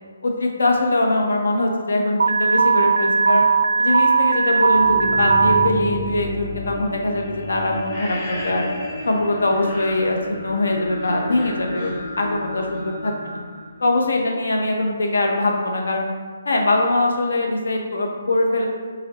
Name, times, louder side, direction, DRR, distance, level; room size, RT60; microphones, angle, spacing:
voice 1, 0.2-3.5 3.8-8.7 9.1-13.4 13.8-16.1 16.4-18.7, left 2 dB, 80° left, 1 dB, 0.7 m, -22 dB
Alarm, 2.2-5.7, right 5 dB, 90° right, 0.4 m, -18 dB
sound 1, 4.6-14.4, equal, 30° left, 1.0 m, -31 dB
4.8 x 3.2 x 2.9 m, 1.5 s
hypercardioid pair, 180°, 0 cm